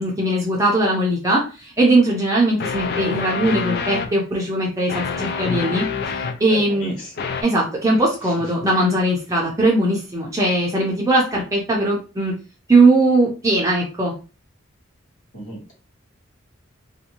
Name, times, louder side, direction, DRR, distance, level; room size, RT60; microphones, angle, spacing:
voice 1, 0.0-5.9 6.1-6.9 7.4-12.3 12.7-14.1, right 2 dB, 15° right, -3 dB, 0.5 m, -19 dB
sound 1, 1.8-1.9 2.6-4.1 4.9-6.4 7.2-7.4, left 5 dB, 50° left, 0.4 m, -26 dB
voice 2, 6.4-7.1 15.3-15.7, right 1 dB, 85° left, -1 dB, 1.3 m, -34 dB
2.6 x 2.2 x 2.8 m, 0.33 s
head